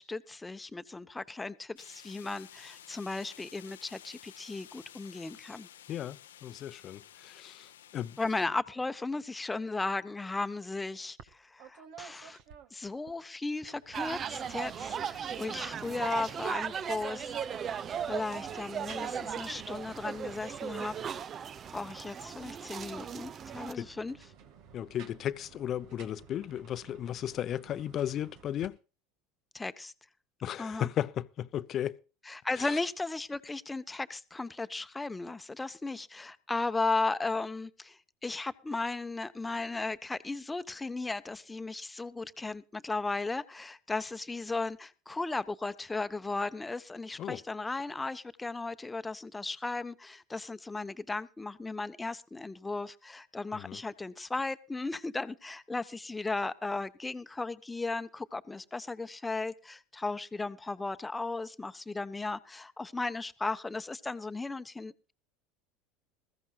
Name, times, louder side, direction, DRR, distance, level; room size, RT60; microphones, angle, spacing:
voice 1, 0.0-5.7 8.2-12.4 12.7-17.3 18.1-21.0 21.7-24.2 29.5-29.9 30.6-30.9 32.2-65.1, left 3 dB, 15° left, 1.0 m, -36 dB
sound 1, 1.8-8.5, left 10 dB, 90° left, 0.8 m, -53 dB
voice 2, 5.9-8.2 23.8-23.9 24.7-28.8 30.4-32.0 32.6-32.8 47.2-47.4 53.5-53.8, left 11 dB, 45° left, 0.7 m, -35 dB
sound 2, 11.2-11.3 11.6-13.2 13.6-21.6 23.4-28.7, right 8 dB, 60° right, 1.7 m, -54 dB
sound 3, 13.9-23.7, right 8 dB, 40° right, 0.7 m, -37 dB
21.0 x 14.5 x 2.4 m
hypercardioid pair, 85°, 0 cm